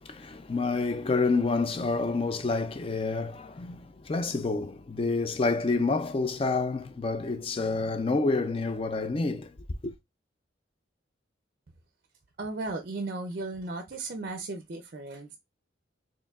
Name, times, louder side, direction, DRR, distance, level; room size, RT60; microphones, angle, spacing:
voice 1, 0.0-9.6 9.8-9.9, left 3 dB, 30° left, 0.4 m, -28 dB
voice 2, 12.4-15.4, right 2 dB, 50° right, 0.5 m, -35 dB
4.4 x 3.0 x 2.3 m
head